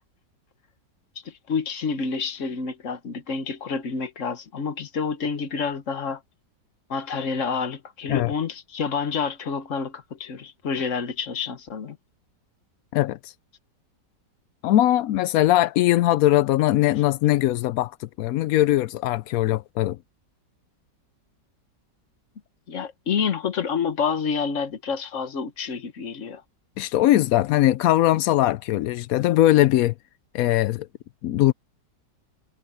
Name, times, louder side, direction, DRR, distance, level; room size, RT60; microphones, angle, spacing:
voice 1, 1.2-6.2 6.9-12.0 22.7-26.4, left 5 dB, 45° left, 1.5 m, -28 dB
voice 2, 12.9-13.3 14.6-20.0 26.8-29.9 30.3-30.9 31.2-31.5, left 14 dB, 75° left, 0.8 m, -20 dB
omnidirectional pair, 1.9 m